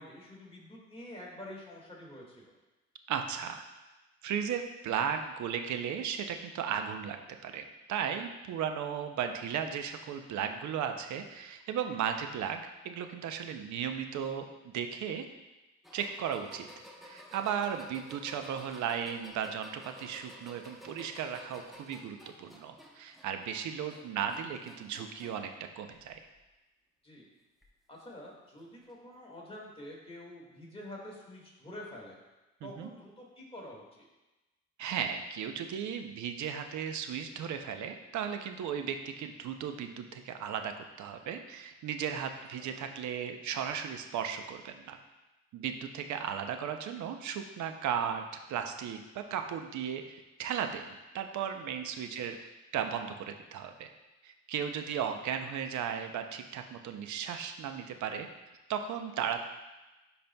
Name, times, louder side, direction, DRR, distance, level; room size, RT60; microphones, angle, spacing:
voice 1, 0.0-2.5 18.1-18.2 27.0-27.3 27.9-32.2 32.6-33.8 42.6-42.7 52.2-52.3, left 1 dB, 20° left, -4 dB, 1.9 m, -47 dB
voice 2, 3.1-3.6 4.2-7.2 7.4-14.5 14.7-15.2 15.9-16.7 17.0-26.2 32.6-32.9 34.8-45.0 45.5-53.9 54.2-58.3 58.7-59.4, right 8 dB, 70° right, 7 dB, 0.6 m, -36 dB
sound 1, 15.8-25.5 25.9-26.5 27.6-27.7 28.8-28.9, equal, ahead, 0.8 m, -54 dB
10.5 x 4.2 x 2.2 m, 1.1 s
cardioid pair, 90°, 30 cm